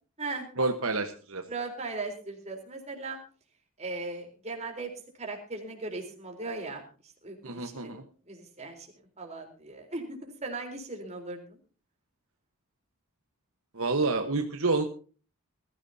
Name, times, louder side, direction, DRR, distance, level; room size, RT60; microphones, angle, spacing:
voice 1, 0.6-1.4 7.4-8.0 13.7-14.8, right 3 dB, 65° right, 5 dB, 1.3 m, -28 dB
voice 2, 1.5-3.2 3.8-4.9 5.2-6.8 7.2-8.0 8.3-8.9 9.2-11.6, right 3 dB, 30° right, 3 dB, 4.0 m, -38 dB
21.0 x 15.0 x 2.8 m, 0.38 s
head